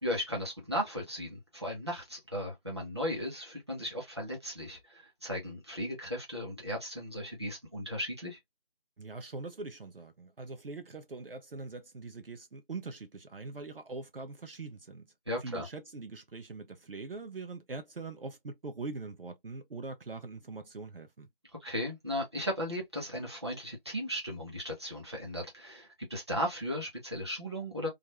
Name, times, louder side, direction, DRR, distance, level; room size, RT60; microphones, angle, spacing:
voice 1, 0.0-8.4 15.3-15.7 21.6-27.9, equal, 25° right, 0.9 m, -36 dB
voice 2, 9.0-15.1 15.4-21.3, right 3 dB, 65° right, 0.6 m, -42 dB
2.5 x 2.4 x 2.9 m
figure-of-eight pair, 175°, 30 cm